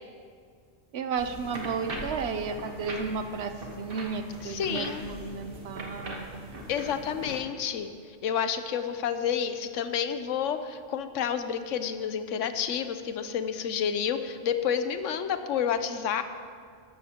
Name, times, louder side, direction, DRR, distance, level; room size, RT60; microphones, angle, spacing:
voice 1, 0.9-6.4, right 5 dB, 65° right, 8 dB, 0.8 m, -33 dB
sound 1, 1.2-7.4, right 1 dB, 45° right, 1.4 m, -40 dB
voice 2, 4.4-5.1 6.7-7.9 8.2-16.2, left 8 dB, 75° left, 10 dB, 1.0 m, -30 dB
13.5 x 12.5 x 2.9 m, 2.1 s
omnidirectional pair, 1.3 m